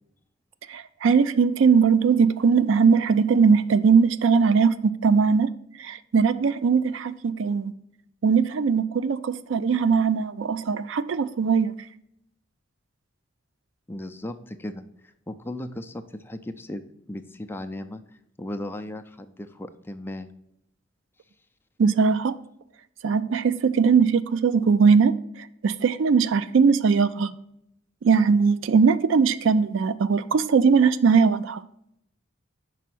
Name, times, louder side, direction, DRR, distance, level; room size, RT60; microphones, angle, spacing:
voice 1, 0.7-7.7 8.2-11.8 21.8-22.4 23.0-27.3 28.0-31.6, right 5 dB, 70° right, 0.4 m, -20 dB
voice 2, 13.9-16.8 17.1-18.0 18.4-20.3, left 1 dB, 10° left, 0.4 m, -36 dB
5.6 x 4.1 x 6.0 m
head